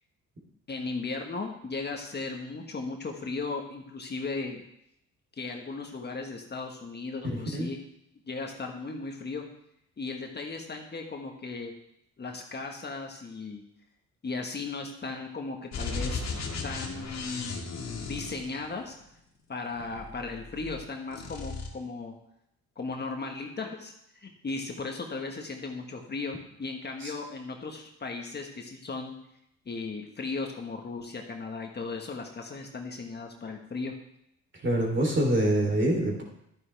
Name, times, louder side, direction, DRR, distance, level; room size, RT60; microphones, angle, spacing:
voice 1, 0.7-4.6 5.3-7.8 8.3-9.4 10.0-11.7 12.2-13.6 14.2-16.2 16.6-17.6 18.1-19.0 19.5-22.1 22.8-29.1 29.6-33.9, left 3 dB, 35° left, 2 dB, 1.4 m, -36 dB
sound 1, 15.7-19.0 19.7-20.8 21.1-21.7, left 4 dB, 60° left, 1.9 m, -36 dB
voice 2, 34.6-36.2, right 1 dB, 40° right, 1 dB, 3.3 m, -25 dB
11.5 x 9.6 x 3.4 m, 0.78 s
cardioid pair, 90°, 30 cm